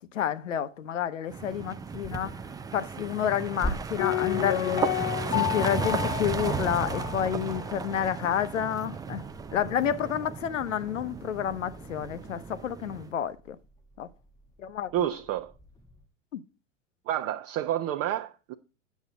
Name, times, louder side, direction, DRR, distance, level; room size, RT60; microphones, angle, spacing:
voice 1, 0.1-2.3 2.7-4.9 5.3-9.3 9.5-13.6 14.0-14.1 14.6-14.9 16.3-16.4, left 9 dB, 75° left, 0.8 m, -29 dB
sound 1, 1.0-1.1 2.0-16.1, equal, 10° left, 1.0 m, -45 dB
sound 2, 1.3-13.1, right 5 dB, 10° right, 0.5 m, -35 dB
Piano, 4.0-7.8 8.0-8.1, left 18 dB, 45° left, 0.5 m, -31 dB
voice 2, 14.9-15.5 17.1-18.5, right 11 dB, 40° right, 0.8 m, -29 dB
9.4 x 7.2 x 3.9 m
figure-of-eight pair, 90°, 38 cm